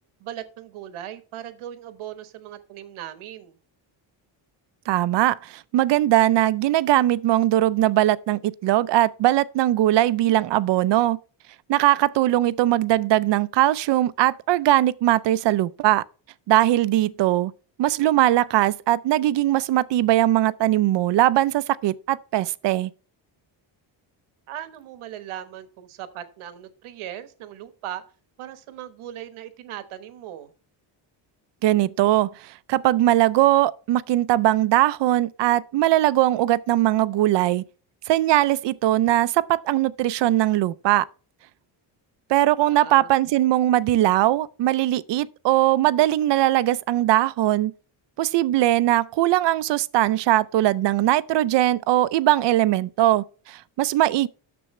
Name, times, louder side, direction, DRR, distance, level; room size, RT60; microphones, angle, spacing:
voice 1, 0.2-3.6 24.5-28.0 28.4-30.5 42.6-43.1, right 11 dB, 90° right, 1.3 m, -38 dB
voice 2, 4.9-11.2 11.7-16.0 16.5-17.5 17.8-22.9 31.6-37.6 38.1-41.1 42.3-47.7 48.2-54.3, right 14 dB, 60° right, 0.5 m, -20 dB
10.0 x 7.0 x 3.1 m
cardioid pair, 145°, 48 cm